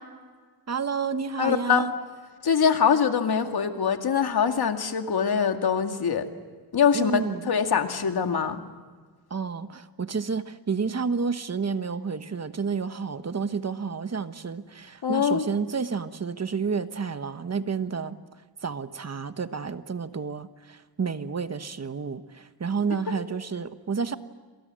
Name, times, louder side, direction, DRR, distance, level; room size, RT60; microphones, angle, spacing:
voice 1, 0.7-1.9 6.9-7.5 9.3-18.2 18.6-24.2, right 5 dB, 40° right, 11 dB, 1.2 m, -30 dB
voice 2, 1.4-1.9 2.4-6.2 6.7-8.6 15.0-15.5, left 7 dB, 70° left, 6 dB, 2.2 m, -23 dB
28.5 x 26.5 x 7.7 m, 1.5 s
wide cardioid pair, 100°, 39 cm